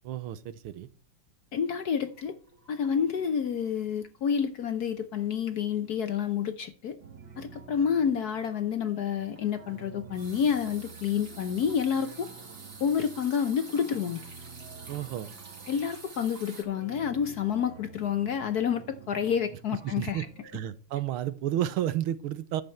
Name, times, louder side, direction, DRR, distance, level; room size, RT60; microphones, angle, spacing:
voice 1, 0.0-0.9 14.9-15.3 19.8-20.2 20.5-22.6, right 12 dB, 80° right, 1.7 m, -31 dB
voice 2, 1.5-2.4 2.7-7.0 7.4-12.3 12.8-14.2 15.7-20.3, left 7 dB, 60° left, 1.1 m, -29 dB
sound 1, 2.1-3.7 4.0-4.3 4.6-4.7 9.3-16.6, right 3 dB, 35° right, 2.6 m, -48 dB
sound 2, 7.0-20.5, right 6 dB, 60° right, 2.1 m, -50 dB
11.0 x 7.9 x 4.3 m
omnidirectional pair, 2.3 m